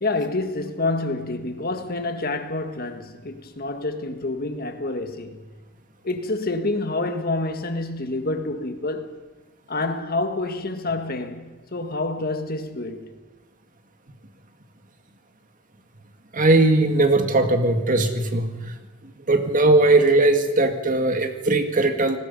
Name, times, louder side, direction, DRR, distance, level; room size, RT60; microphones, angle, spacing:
voice 1, 0.0-5.4 6.0-9.1 9.7-13.1, left 2 dB, 45° left, 1.7 m, -28 dB
voice 2, 16.3-18.5 19.3-22.2, right 2 dB, 35° right, 2.0 m, -19 dB
29.5 x 19.0 x 5.5 m
head